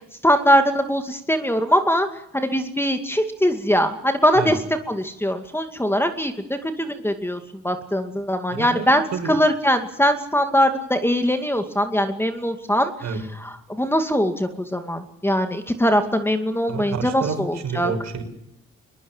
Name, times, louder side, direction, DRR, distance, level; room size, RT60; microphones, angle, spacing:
voice 1, 0.2-2.1 2.3-4.6 4.9-7.4 7.6-12.9 13.4-17.9, equal, 10° left, 7 dB, 2.4 m, -21 dB
voice 2, 8.5-9.3 13.0-13.2 16.7-18.2, right 5 dB, 65° right, 6 dB, 5.9 m, -29 dB
22.0 x 21.0 x 7.4 m, 0.80 s
cardioid pair, 90°, 30 cm